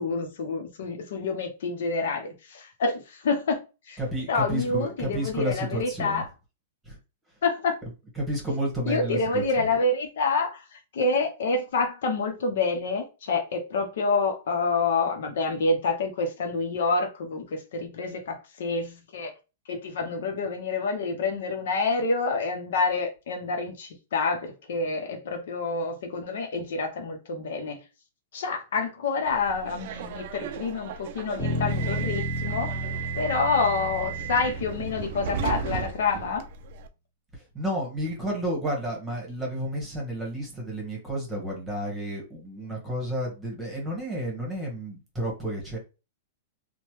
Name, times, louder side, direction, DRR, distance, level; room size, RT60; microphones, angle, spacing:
voice 1, 0.0-3.6 3.9-4.0 4.3-6.3 7.4-7.8 8.8-19.3 19.7-27.8 28.3-32.7 33.1-36.4, left 3 dB, 70° left, 0.7 m, -27 dB
voice 2, 4.0-6.2 6.8-7.0 8.2-9.4 37.5-45.8, right 1 dB, 10° right, 1.2 m, -31 dB
Subway metro underground, 29.3-36.9, right 7 dB, 55° right, 0.4 m, -35 dB
Bass guitar, 31.4-35.8, left 1 dB, 35° left, 1.7 m, -32 dB
2.9 x 2.1 x 3.0 m
hypercardioid pair, 140°, 0 cm